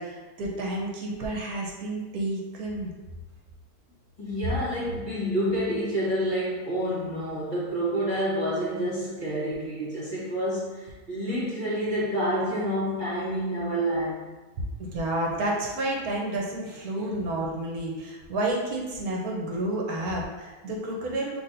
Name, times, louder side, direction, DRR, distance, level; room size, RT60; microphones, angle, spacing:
voice 1, 0.0-2.9 14.8-21.4, right 1 dB, 75° right, -2 dB, 1.3 m, -30 dB
voice 2, 4.2-14.2, equal, 30° left, -9 dB, 1.7 m, -28 dB
5.8 x 3.3 x 2.6 m, 1.2 s
omnidirectional pair, 1.6 m